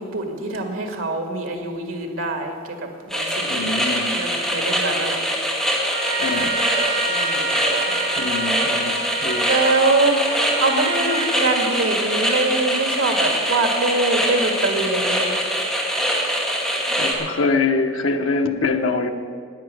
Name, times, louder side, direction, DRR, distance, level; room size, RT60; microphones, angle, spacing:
voice 1, 0.0-3.7 4.1-5.2 7.1-7.5 7.9-8.3 9.4-10.3 10.6-15.4, right 2 dB, 85° right, 5 dB, 2.0 m, -24 dB
sound 1, 3.1-17.1, equal, ahead, 2.0 m, -23 dB
voice 2, 3.5-4.2 6.2-6.6 8.2-9.5 17.0-19.1, left 3 dB, 75° left, 5 dB, 0.9 m, -24 dB
Trumpet, 5.8-12.4, right 4 dB, 55° right, 1.4 m, -29 dB
11.0 x 9.1 x 9.2 m, 2.1 s
head